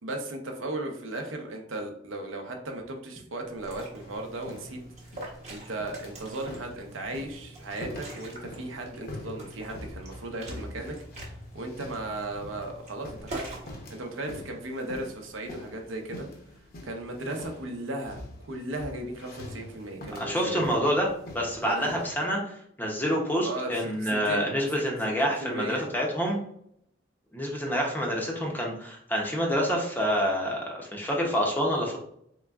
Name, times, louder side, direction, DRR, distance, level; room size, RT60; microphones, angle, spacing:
voice 1, 0.0-4.8 5.1-11.0 11.5-13.4 13.9-16.3 16.8-20.8 21.6-21.9 23.4-24.5 25.2-25.8, right 2 dB, 75° right, 3 dB, 0.7 m, -36 dB
Liquid, 3.4-13.7, right 2 dB, 35° right, 0.9 m, -44 dB
sound 1, 4.0-22.1, left 1 dB, 50° left, 0.7 m, -45 dB
voice 2, 20.2-21.1 21.3-26.4 27.3-32.0, equal, 10° left, -1 dB, 0.6 m, -27 dB
3.8 x 3.4 x 2.3 m, 0.71 s
head